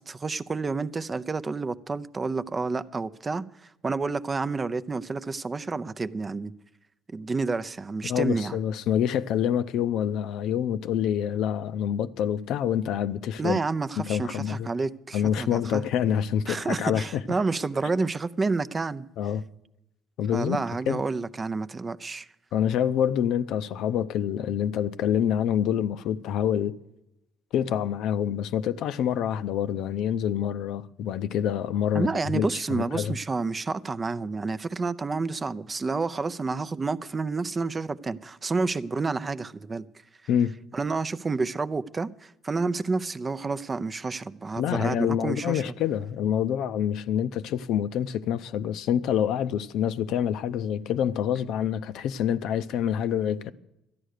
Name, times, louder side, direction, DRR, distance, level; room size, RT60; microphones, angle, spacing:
voice 1, 0.1-6.5 7.1-8.6 13.4-15.9 16.5-19.1 20.3-22.3 31.9-39.9 40.7-45.7, right 4 dB, 25° right, 0.5 m, -29 dB
voice 2, 8.0-13.6 14.1-14.7 15.1-17.2 19.2-19.4 20.2-20.6 20.9-21.0 22.5-26.7 27.5-33.1 40.3-40.5 44.6-53.5, left 9 dB, 75° left, 0.5 m, -26 dB
13.0 x 10.0 x 6.5 m
cardioid pair, 100°, 0 cm